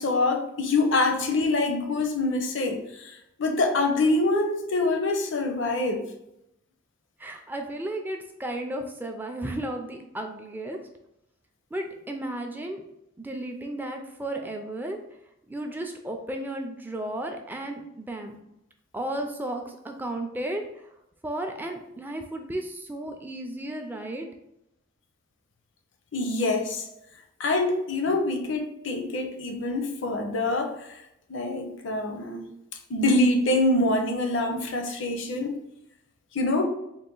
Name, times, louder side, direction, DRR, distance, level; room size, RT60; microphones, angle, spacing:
voice 1, 0.0-6.1 26.1-26.9 27.4-31.0 31.3-32.5 32.9-35.6 36.3-36.6, left 2 dB, 65° left, 5 dB, 0.6 m, -25 dB
voice 2, 7.2-10.8 11.7-12.8 13.2-15.0 15.5-18.4 18.9-20.9 21.2-24.3, right 1 dB, 10° right, 4 dB, 0.4 m, -34 dB
3.9 x 2.5 x 3.8 m, 0.82 s
head